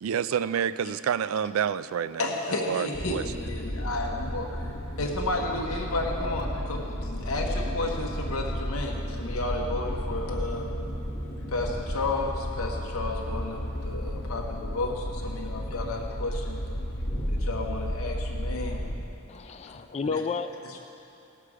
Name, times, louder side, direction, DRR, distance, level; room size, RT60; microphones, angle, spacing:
voice 1, 0.0-2.3 2.7-3.2, right 8 dB, 70° right, 15 dB, 0.3 m, -28 dB
voice 2, 2.2-4.7 5.0-10.7 11.5-16.6 17.3-18.8 20.0-20.2 20.6-20.8, left 2 dB, 80° left, 0 dB, 1.1 m, -32 dB
sound 1, 2.9-19.1, equal, 55° left, 1.2 m, -33 dB
voice 3, 19.3-20.8, left 4 dB, 30° left, 8 dB, 0.4 m, -32 dB
18.5 x 6.7 x 4.9 m, 2.9 s
head